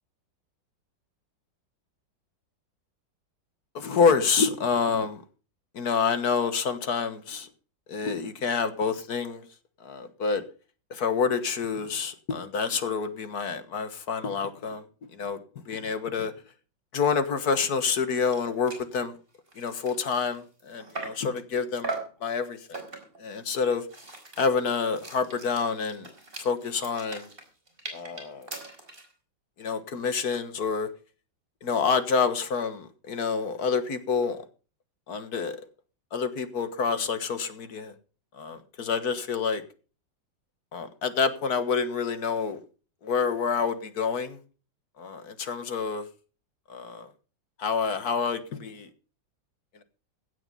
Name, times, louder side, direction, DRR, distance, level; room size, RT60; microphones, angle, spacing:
voice 1, 3.8-5.2 5.8-7.5 7.9-9.4 9.8-10.4 10.9-14.8 15.2-15.4 15.7-16.3 16.9-19.1 19.6-21.9 22.2-22.8 23.2-23.8 24.4-26.1 26.4-27.3 27.9-28.5 29.6-30.9 31.6-34.4 35.1-35.6 36.1-37.9 38.4-39.6 40.7-42.6 43.0-44.4 45.0-46.1 46.7-47.1 47.6-48.9, left 5 dB, 55° left, 1.8 m, -27 dB
sound 1, 18.0-18.1 18.3-18.4 18.7-18.9 19.3-21.3 21.8-22.2 22.7-23.2 23.7-29.1, right 3 dB, 30° right, 4.3 m, -40 dB
16.5 x 8.8 x 5.4 m
omnidirectional pair, 2.0 m